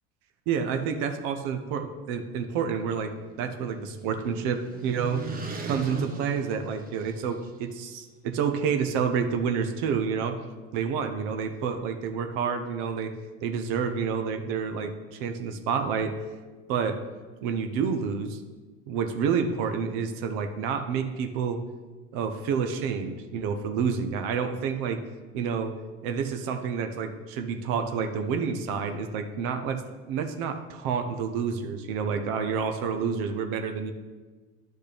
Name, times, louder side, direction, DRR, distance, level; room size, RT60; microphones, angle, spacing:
voice 1, 0.5-5.2 5.7-10.4 10.7-13.1 13.4-16.1 16.7-17.0 17.4-18.4 18.9-21.6 22.1-25.0 25.3-25.7 26.0-29.8 30.1-33.9, right 6 dB, 65° right, 7 dB, 0.9 m, -29 dB
sound 1, 2.8-7.5, right 3 dB, 25° right, 1.2 m, -39 dB
10.0 x 6.4 x 3.4 m, 1.3 s
hypercardioid pair, 90°, 36 cm